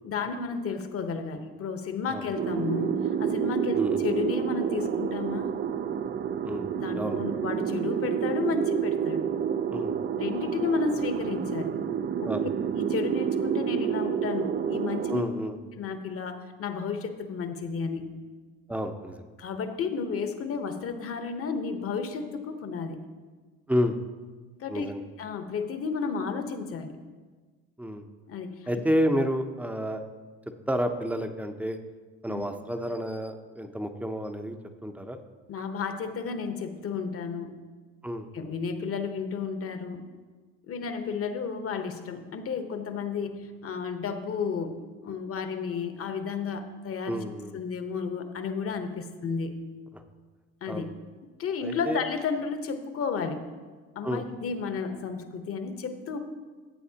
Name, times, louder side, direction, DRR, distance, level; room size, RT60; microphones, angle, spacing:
voice 1, 0.0-5.5 6.7-9.2 10.2-11.8 12.2-12.3 12.9-15.2 15.8-18.1 19.4-23.0 24.6-24.9 25.2-27.0 28.3-28.7 32.3-32.4 35.5-37.6 38.3-40.1 40.6-47.2 47.5-49.6 50.6-50.9 51.4-53.4 53.9-56.2, left 5 dB, 45° left, 7 dB, 1.1 m, -32 dB
sound 1, 2.4-15.2, right 8 dB, 35° right, 0.5 m, -29 dB
voice 2, 6.4-7.2 9.7-10.0 12.2-12.5 15.1-15.6 18.7-19.2 23.7-24.0 24.7-25.0 27.8-28.1 28.7-30.0 30.7-31.8 32.2-35.2 38.0-38.3 47.1-47.5 49.9-50.0 50.7-50.9 51.6-52.0 54.0-54.2, equal, 5° right, 7 dB, 0.8 m, -30 dB
14.5 x 7.8 x 2.9 m, 1.4 s
supercardioid pair, 80°, 31 cm